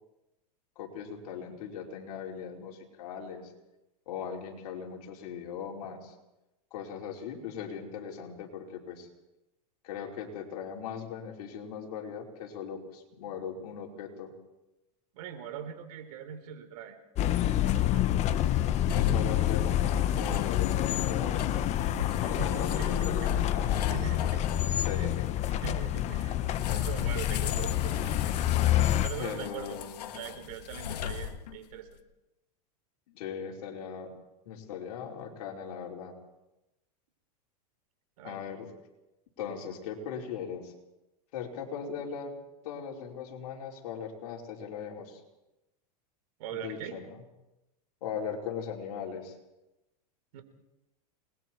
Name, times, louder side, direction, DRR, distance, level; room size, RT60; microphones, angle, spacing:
voice 1, 0.7-3.5 4.1-6.1 6.7-9.1 9.8-14.3 18.9-21.8 22.2-23.9 24.6-25.2 29.1-30.1 33.1-34.2 34.4-36.1 38.2-38.7 39.4-40.7 41.3-42.4 42.6-45.2 46.5-47.1 48.0-49.3, left 7 dB, 65° left, -1 dB, 5.0 m, -39 dB
voice 2, 15.1-17.0 17.5-18.1 22.2-23.4 23.9-25.1 25.5-26.4 26.7-28.1 29.0-29.8 30.1-32.0 38.2-38.4 46.4-47.0 50.3-50.4, right 8 dB, 65° right, 8 dB, 3.9 m, -42 dB
sound 1, 17.2-29.1, left 12 dB, 35° left, 1.1 m, -28 dB
sound 2, 18.9-24.9 26.5-31.7, left 9 dB, 80° left, 1.8 m, -37 dB
28.5 x 21.0 x 4.7 m, 0.96 s
supercardioid pair, 130°, 20 cm